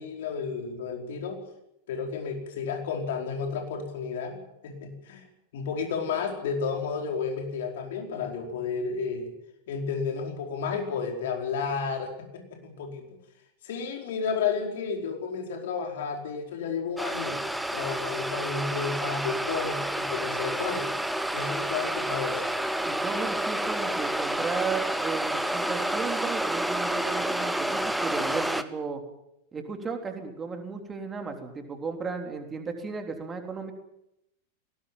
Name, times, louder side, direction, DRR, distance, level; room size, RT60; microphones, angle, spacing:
voice 1, 0.0-1.4 1.9-5.2 5.5-9.3 9.7-13.0 13.6-17.4 17.7-21.0 21.3-22.4, left 5 dB, 55° left, 3 dB, 4.7 m, -32 dB
sound 1, 17.0-28.6, right 1 dB, 5° right, 1.2 m, -29 dB
voice 2, 22.8-29.0 29.5-33.7, right 5 dB, 20° right, 4 dB, 3.6 m, -35 dB
20.5 x 18.5 x 9.1 m, 0.85 s
figure-of-eight pair, 90°, 0 cm